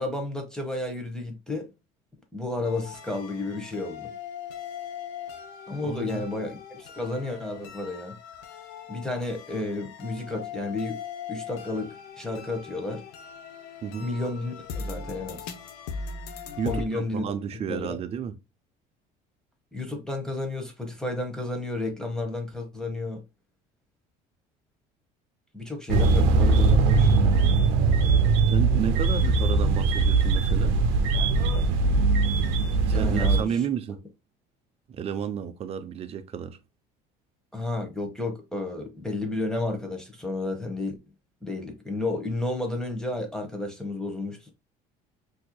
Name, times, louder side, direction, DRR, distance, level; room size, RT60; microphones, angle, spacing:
voice 1, 0.0-1.7 2.3-4.1 5.7-8.1 8.9-11.0 11.3-13.0 14.0-15.5 16.6-17.2 17.7-18.0 19.7-23.2 25.5-27.2 32.8-33.6 37.5-41.0 41.4-44.5, left 2 dB, 5° left, 1.0 m, -32 dB
sound 1, 2.6-16.8, left 6 dB, 90° left, 0.7 m, -40 dB
voice 2, 5.8-6.3 13.8-14.1 16.6-18.3 28.5-30.8 32.9-34.0 34.9-36.6, right 8 dB, 40° right, 0.6 m, -32 dB
sound 2, 25.9-33.4, right 4 dB, 85° right, 0.6 m, -21 dB
4.3 x 2.8 x 2.2 m
cardioid pair, 110°, 16 cm